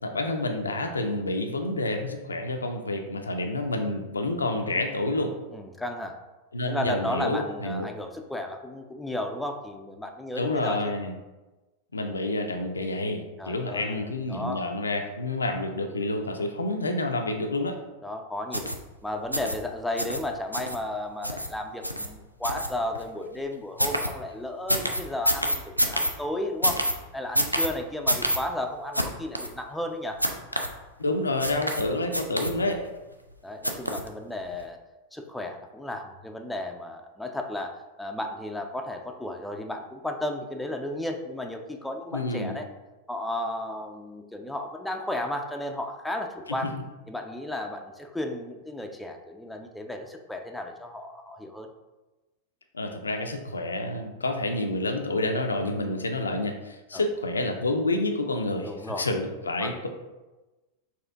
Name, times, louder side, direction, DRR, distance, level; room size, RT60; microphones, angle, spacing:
voice 1, 0.0-5.3 6.5-7.9 10.4-11.1 11.9-17.8 31.0-32.8 42.1-42.6 46.6-46.8 52.7-59.9, left 2 dB, 75° left, 5 dB, 0.4 m, -29 dB
voice 2, 5.5-6.2 6.7-10.9 13.4-14.0 14.3-14.6 18.0-18.7 19.0-26.8 27.1-30.2 33.4-34.8 35.1-37.7 38.0-42.7 43.1-46.7 47.1-51.7 56.9-57.0 58.6-59.1 59.6-59.9, left 1 dB, 5° left, 4 dB, 0.4 m, -34 dB
sound 1, 18.5-18.8 19.3-19.6 20.0-20.2 20.5-20.8 21.2-21.5 21.8-22.1 22.4-23.0 23.8-24.1 24.7-26.1 26.6-26.9 27.4-27.7 28.1-28.4 28.9-29.1 29.4-29.5 30.2-30.7 31.4-31.8 32.1-32.8 33.6-34.1 34.5-34.6, equal, 90° right, 0.3 m, -26 dB
4.2 x 2.5 x 3.5 m, 1.1 s
figure-of-eight pair, 90°, 0 cm